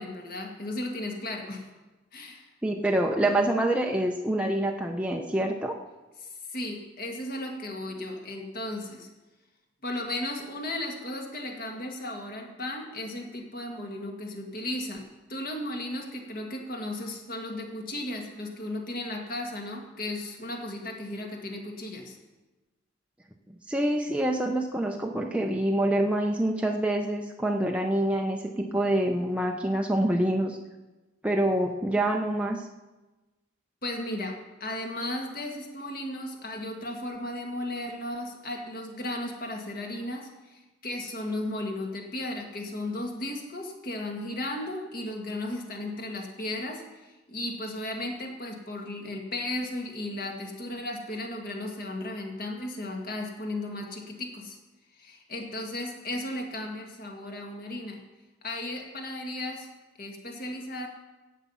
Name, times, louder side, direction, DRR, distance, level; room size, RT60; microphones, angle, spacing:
voice 1, 0.0-1.7 2.1-2.5 6.2-9.1 9.8-22.2 33.8-54.6 54.9-58.0 58.4-59.7 60.0-60.9, left 1 dB, 45° left, 1 dB, 2.0 m, -35 dB
voice 2, 2.6-5.8 23.7-30.6 31.2-32.7, right 1 dB, 5° right, 1 dB, 0.6 m, -26 dB
17.5 x 7.4 x 5.6 m, 1.1 s
head